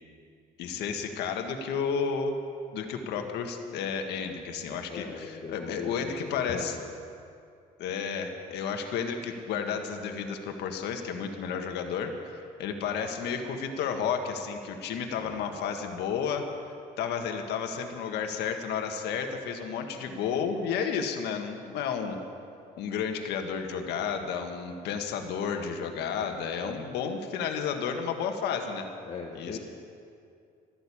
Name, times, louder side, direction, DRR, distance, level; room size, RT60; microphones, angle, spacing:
voice 1, 0.6-2.4 2.7-6.7 7.8-22.2 22.8-28.9 29.3-29.6, left 6 dB, 80° left, 5 dB, 1.7 m, -32 dB
voice 2, 4.9-6.7 15.2-15.5 29.0-29.6, left 5 dB, 40° left, -1 dB, 1.5 m, -39 dB
13.5 x 12.0 x 8.6 m, 2.5 s
cardioid pair, 110°, 17 cm